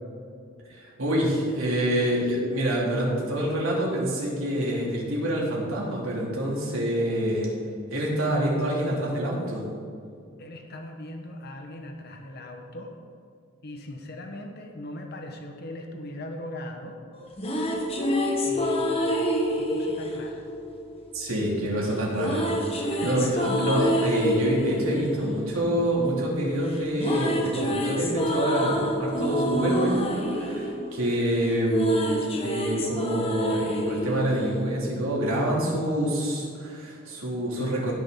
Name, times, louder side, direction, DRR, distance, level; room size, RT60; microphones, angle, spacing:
voice 1, 0.7-7.5 7.9-9.6 21.1-37.9, right 1 dB, 85° right, -3 dB, 3.1 m, -27 dB
voice 2, 10.4-13.0 13.6-17.0 18.4-20.4 22.9-23.2 23.5-23.6, left 1 dB, 50° left, 3 dB, 1.2 m, -40 dB
sound 1, 17.1-21.3 22.2-26.4 26.7-35.2, equal, 30° left, 1.3 m, -27 dB
17.0 x 6.4 x 3.9 m, 2.4 s
head